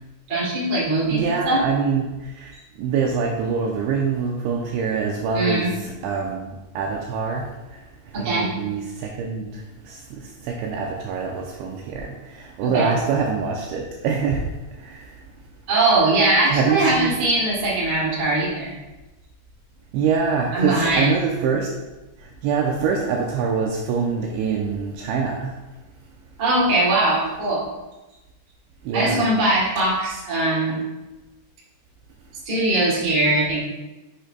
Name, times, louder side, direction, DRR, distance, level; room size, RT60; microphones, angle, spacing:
voice 1, 0.3-1.6 5.3-5.7 8.1-8.5 12.6-12.9 15.7-18.8 20.5-21.1 26.4-27.6 28.9-30.8 32.4-33.6, right 2 dB, 35° right, -8 dB, 1.5 m, -21 dB
voice 2, 1.1-2.5 2.8-7.4 8.2-14.4 14.8-15.1 16.5-17.2 19.9-21.7 22.4-25.5 28.9-29.2, right 5 dB, 85° right, 0 dB, 2.6 m, -25 dB
8.9 x 6.6 x 2.2 m, 1.1 s
omnidirectional pair, 5.8 m